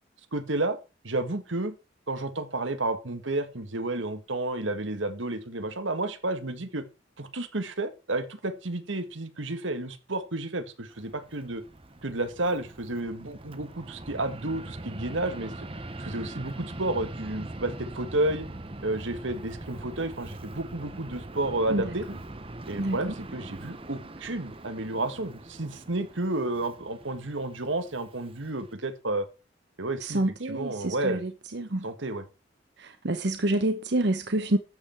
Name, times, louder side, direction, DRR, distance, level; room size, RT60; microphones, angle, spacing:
voice 1, 0.3-0.8 1.0-1.7 2.1-6.8 7.2-11.6 12.0-15.7 16.0-18.5 18.8-22.1 22.7-29.3 29.8-31.2 31.8-32.3, right 2 dB, 85° right, 1.7 m, -31 dB
Fixed-wing aircraft airplane, 10.9-28.7, right 2 dB, 30° right, 1.0 m, -42 dB
voice 2, 30.0-31.2 31.5-31.9 32.8-34.6, right 1 dB, 60° right, 1.0 m, -27 dB
12.5 x 8.1 x 4.5 m
head